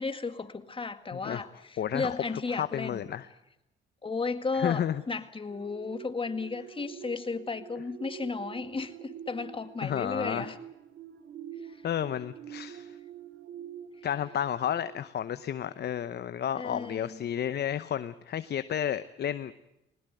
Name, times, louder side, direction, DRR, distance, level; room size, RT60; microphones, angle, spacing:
voice 1, 0.0-3.1 4.0-10.6 11.7-11.8 16.5-17.2, left 4 dB, 25° left, 10 dB, 1.9 m, -34 dB
voice 2, 1.1-1.5 1.8-2.2 2.5-3.3 4.5-5.0 9.8-10.5 11.8-13.0 14.0-19.5, left 9 dB, 55° left, 13 dB, 0.9 m, -32 dB
sound 1, 5.5-15.4 15.8-16.0, right 9 dB, 65° right, 2.2 m, -46 dB
21.0 x 19.5 x 9.3 m, 0.88 s
cardioid pair, 90°, 20 cm